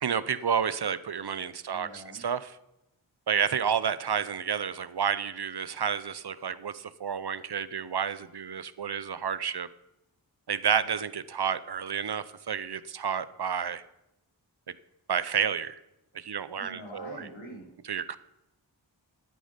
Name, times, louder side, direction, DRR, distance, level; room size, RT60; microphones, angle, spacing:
voice 1, 0.0-2.5 3.3-9.7 10.5-13.8 14.7-14.8 15.1-15.8 16.1-17.2 17.9-18.2, right 7 dB, 60° right, 16 dB, 0.7 m, -30 dB
voice 2, 1.7-2.2 16.6-17.7, equal, 85° left, -1 dB, 3.8 m, -44 dB
13.0 x 9.4 x 5.2 m, 0.87 s
wide cardioid pair, 45°, 45 cm